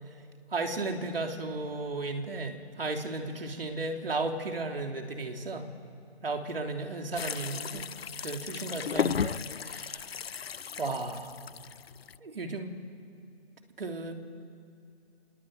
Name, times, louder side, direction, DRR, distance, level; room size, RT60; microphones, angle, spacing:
voice 1, 0.5-5.7 6.2-7.9 8.2-10.2 10.8-11.4 12.2-12.8 13.8-14.1, right 3 dB, 60° right, 4 dB, 3.3 m, -34 dB
sound 1, 7.2-12.2, left 7 dB, 65° left, 0.6 m, -35 dB
27.5 x 20.0 x 8.9 m, 2.5 s
figure-of-eight pair, 165°, 33 cm